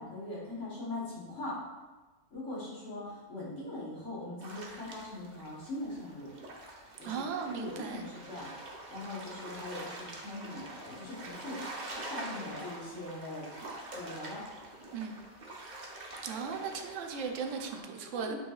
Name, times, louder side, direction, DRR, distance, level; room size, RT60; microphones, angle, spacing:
voice 1, 0.0-1.6 2.3-6.3 7.0-7.2 7.5-11.8 12.0-13.5 13.9-14.4 18.1-18.3, left 2 dB, 65° left, -7 dB, 1.5 m, -41 dB
sound 1, 4.4-17.8, right 2 dB, 45° right, 0.7 m, -45 dB
voice 2, 7.0-8.0 14.9-15.1 16.2-18.3, right 6 dB, 70° right, 3 dB, 0.9 m, -37 dB
7.5 x 3.0 x 2.3 m, 1.2 s
omnidirectional pair, 1.4 m